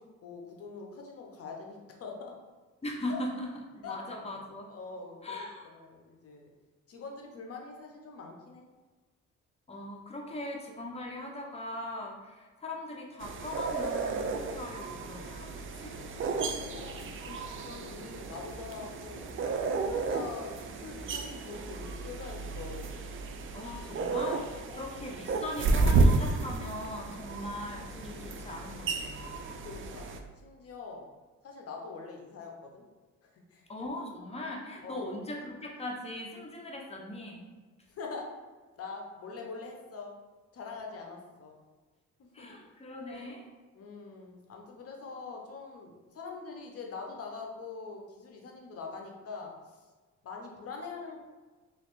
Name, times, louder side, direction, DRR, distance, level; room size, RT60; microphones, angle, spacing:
voice 1, 0.0-2.3 3.1-3.2 3.8-4.0 4.7-5.4 5.7-6.5 6.9-8.7 16.4-19.4 19.7-22.9 24.6-24.9 29.6-30.1 30.4-31.1 31.4-32.8 33.3-33.7 34.8-35.1 37.9-38.4 38.8-40.1 40.5-41.5 42.4-42.5 43.1-43.3 43.7-49.5 50.2-51.2, left 4 dB, 50° left, 1 dB, 0.7 m, -44 dB
voice 2, 2.8-4.7 5.2-5.7 9.7-15.9 23.5-29.2 33.7-37.5 42.3-43.5, left 1 dB, 20° left, -1 dB, 0.7 m, -40 dB
sound 1, 13.2-30.2, right 3 dB, 45° right, 0.4 m, -32 dB
3.1 x 3.1 x 3.0 m, 1.4 s
cardioid pair, 90°, 30 cm